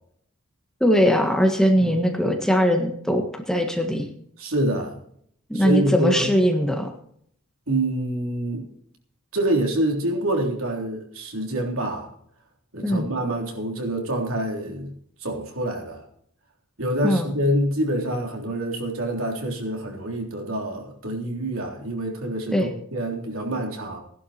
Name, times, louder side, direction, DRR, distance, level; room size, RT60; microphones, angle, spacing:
voice 1, 0.8-4.1 5.5-6.9 12.8-13.1 17.0-17.3 22.5-22.7, equal, ahead, 3 dB, 1.5 m, -20 dB
voice 2, 4.4-5.0 5.5-6.3 7.7-8.7 9.3-12.1 12.7-14.9 15.2-16.0 16.8-24.0, right 1 dB, 70° right, 1 dB, 3.5 m, -26 dB
16.5 x 11.5 x 4.3 m, 0.67 s
head